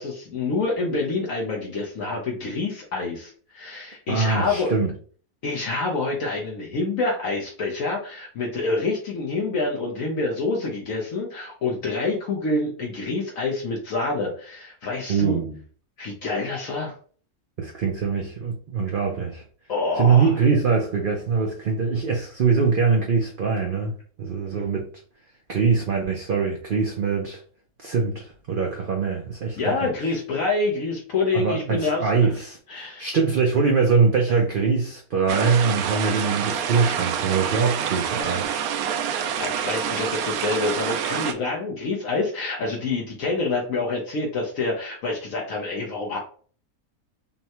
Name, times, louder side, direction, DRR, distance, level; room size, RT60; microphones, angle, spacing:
voice 1, 0.0-4.7 5.4-15.4 16.0-16.9 19.7-20.3 29.6-32.1 32.7-33.1 39.1-46.2, left 3 dB, 65° left, 1.2 m, -27 dB
voice 2, 4.1-4.9 15.1-15.6 17.6-19.4 20.0-24.9 25.5-27.4 27.8-29.7 31.3-38.6, right 5 dB, 50° right, 0.6 m, -23 dB
sound 1, 35.3-41.3, right 8 dB, 75° right, 1.0 m, -27 dB
5.4 x 2.2 x 2.9 m
omnidirectional pair, 1.6 m